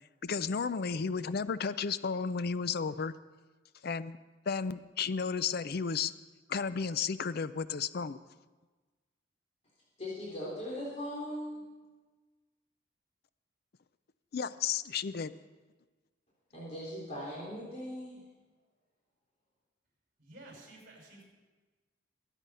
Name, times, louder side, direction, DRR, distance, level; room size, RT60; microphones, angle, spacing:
voice 1, 0.2-3.1 3.8-4.2 4.5-6.1 6.5-8.2 14.3-15.3, left 5 dB, 55° left, 15 dB, 0.5 m, -33 dB
voice 2, 10.0-11.7 16.5-18.2, equal, 35° left, -7 dB, 3.8 m, -39 dB
voice 3, 20.2-21.2, right 2 dB, 45° right, -1 dB, 5.8 m, -52 dB
22.0 x 9.0 x 5.5 m, 1.3 s
head